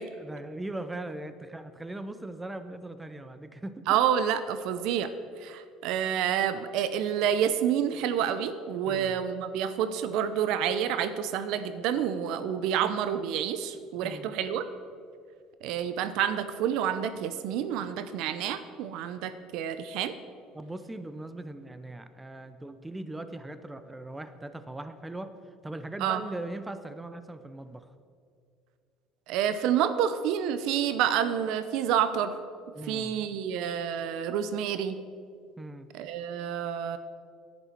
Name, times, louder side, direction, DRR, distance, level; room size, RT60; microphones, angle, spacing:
voice 1, 0.2-4.0 8.9-9.2 14.0-14.3 20.5-25.3 25.6-27.9 32.7-33.2 35.6-35.9, right 2 dB, 10° right, 11 dB, 0.6 m, -40 dB
voice 2, 3.9-5.1 5.4-14.7 15.6-20.2 26.0-26.2 29.3-32.4 32.9-35.0 35.9-37.0, right 9 dB, 75° right, 12 dB, 0.6 m, -28 dB
10.5 x 9.7 x 4.5 m, 2.3 s
supercardioid pair, 100°, 0 cm